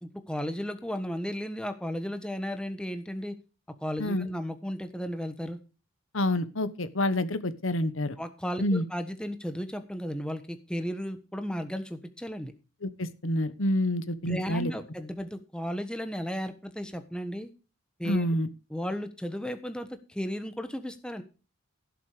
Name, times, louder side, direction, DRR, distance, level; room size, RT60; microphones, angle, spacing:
voice 1, 0.0-3.4 3.8-5.6 8.2-12.5 14.2-17.5 18.0-18.3 18.7-21.2, equal, 5° left, 9 dB, 1.3 m, -34 dB
voice 2, 6.1-8.2 8.6-8.8 12.8-14.7 18.0-18.5, left 1 dB, 70° left, 14 dB, 1.2 m, -28 dB
16.5 x 7.3 x 5.0 m, 0.31 s
head